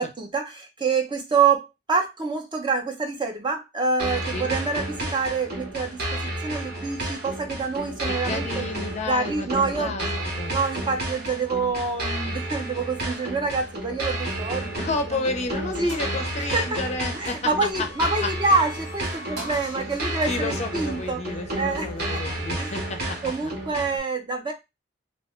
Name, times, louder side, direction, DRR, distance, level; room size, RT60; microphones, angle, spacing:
voice 1, 0.0-6.0 6.4-8.7 9.0-9.9 10.5-15.2 15.8-16.0 16.5-16.8 17.1-21.2 21.6-22.2 22.6-22.7 23.2-24.5, right 4 dB, 25° right, 0.5 m, -26 dB
sound 1, 4.0-24.0, right 1 dB, 55° right, 0.9 m, -31 dB
voice 2, 8.0-10.1 10.3-10.5 14.8-17.7 18.0-18.3 20.3-23.5, left 3 dB, 35° left, 0.4 m, -31 dB
sound 2, 14.2-15.1 15.5-15.6 15.9-22.0, right 1 dB, 75° right, 1.6 m, -43 dB
2.7 x 2.2 x 2.9 m
head